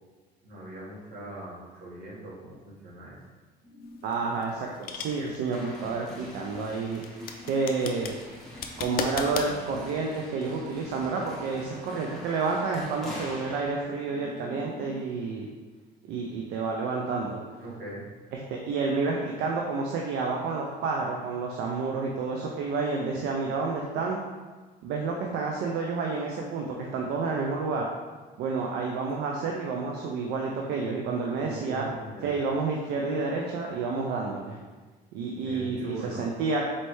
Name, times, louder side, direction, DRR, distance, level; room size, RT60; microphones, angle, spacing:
voice 1, 0.4-3.2 17.6-18.1 31.4-32.3 35.4-36.3, right 1 dB, 65° right, -5 dB, 1.5 m, -41 dB
sound 1, 3.6-15.1, left 2 dB, 20° right, 1.4 m, -50 dB
sound 2, 3.9-9.5, left 6 dB, 60° left, 0.4 m, -36 dB
voice 2, 4.0-7.0 7.4-8.1 8.8-15.5 16.1-17.4 18.3-24.2 24.8-27.9 28.4-31.9 32.2-34.6 35.1-36.7, right 4 dB, 80° right, -1 dB, 0.5 m, -30 dB
sound 3, 5.5-13.7, equal, 5° left, 1.0 m, -45 dB
4.2 x 3.2 x 3.1 m, 1.3 s
cardioid pair, 110°, 17 cm